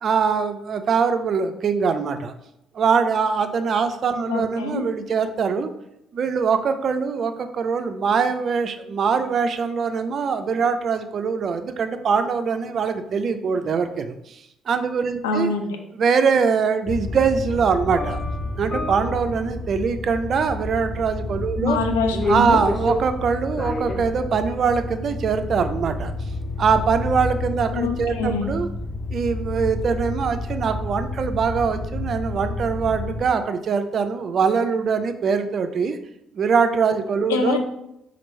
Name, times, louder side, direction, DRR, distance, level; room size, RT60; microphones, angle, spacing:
voice 1, 0.0-2.3 2.7-5.7 6.1-15.5 15.9-18.2 18.6-21.8 22.3-26.1 26.6-28.7 29.1-36.0 36.4-37.6, right 5 dB, 55° right, 9 dB, 0.3 m, -23 dB
voice 2, 4.3-4.9 15.2-15.8 21.6-22.6 27.7-28.5 37.3-37.6, left 3 dB, 90° left, 4 dB, 0.4 m, -24 dB
sound 1, 16.9-33.2, left 2 dB, 35° left, 0.5 m, -29 dB
3.0 x 2.5 x 4.2 m, 0.82 s
hypercardioid pair, 50°, 0 cm